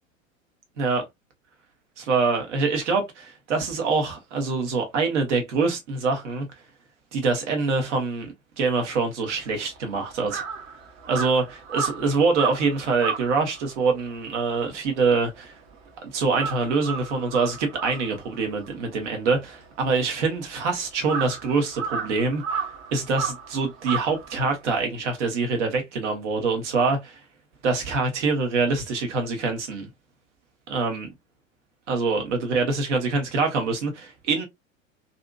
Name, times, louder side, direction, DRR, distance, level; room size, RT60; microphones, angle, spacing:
voice 1, 2.0-6.4 7.1-10.4 11.1-15.6 16.0-22.6 22.9-27.2 27.6-29.9 30.7-31.1 31.9-34.4, right 4 dB, 60° right, 1.2 m, -25 dB
Crow, 9.3-15.9 16.2-24.8, right 6 dB, 30° right, 0.8 m, -34 dB
2.7 x 2.6 x 2.3 m
figure-of-eight pair, 90°, 40 cm